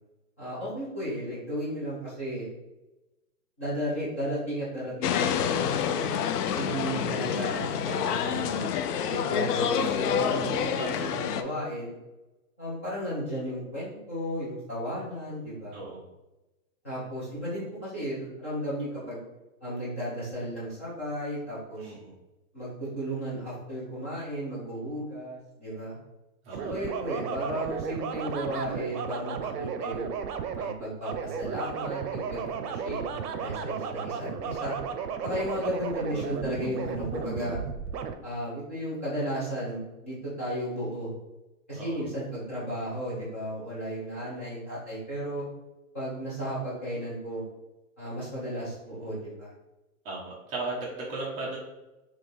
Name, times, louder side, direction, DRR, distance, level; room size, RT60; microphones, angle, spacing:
voice 1, 0.4-2.5 3.6-6.2 6.6-8.6 9.1-11.9 12.6-15.8 16.8-19.2 19.6-21.9 22.5-25.9 26.6-30.1 30.6-34.8 35.2-37.6 38.2-41.1 41.7-45.4 45.9-47.4 48.0-49.5, equal, 10° left, -10 dB, 0.3 m, -34 dB
sound 1, 5.0-11.4, left 8 dB, 80° left, 0.5 m, -28 dB
voice 2, 15.7-16.1 21.8-22.1 26.4-26.7 41.7-42.1 50.0-51.6, right 2 dB, 15° right, -4 dB, 0.7 m, -36 dB
sound 2, 26.5-38.1, right 7 dB, 90° right, 0.6 m, -34 dB
3.6 x 2.9 x 4.1 m, 1.0 s
hypercardioid pair, 155°, 46 cm